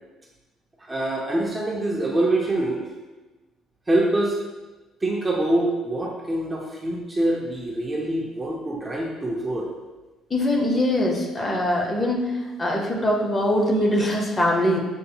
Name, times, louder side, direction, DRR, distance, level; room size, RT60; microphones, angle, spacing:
voice 1, 0.9-2.8 3.9-4.4 5.0-9.7, right 1 dB, 15° right, -2 dB, 0.6 m, -24 dB
voice 2, 10.3-12.3 12.6-14.8, left 1 dB, 20° left, 0 dB, 0.8 m, -22 dB
6.7 x 3.5 x 2.3 m, 1.2 s
cardioid pair, 135°, 0 cm